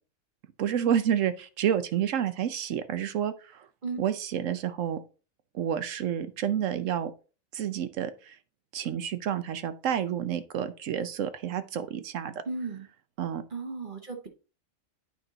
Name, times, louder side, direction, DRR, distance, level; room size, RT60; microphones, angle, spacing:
voice 1, 0.6-3.7 4.0-5.0 5.5-7.1 7.5-8.4 8.7-12.3 13.2-13.4, right 9 dB, 70° right, 1.0 m, -29 dB
voice 2, 12.4-12.9 13.5-14.3, right 4 dB, 40° right, 1.2 m, -35 dB
8.9 x 4.4 x 3.8 m
omnidirectional pair, 1.4 m